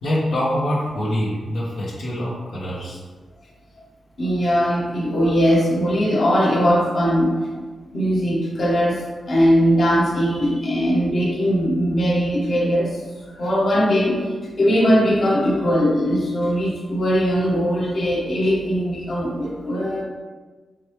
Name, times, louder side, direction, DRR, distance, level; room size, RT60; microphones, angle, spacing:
voice 1, 0.0-3.0, equal, 85° left, -7 dB, 1.0 m, -24 dB
voice 2, 4.2-7.3 7.9-12.9 13.4-14.2 14.6-20.0, equal, 60° left, -4 dB, 1.2 m, -20 dB
5.0 x 3.4 x 3.1 m, 1.3 s
cardioid pair, 55°, 0 cm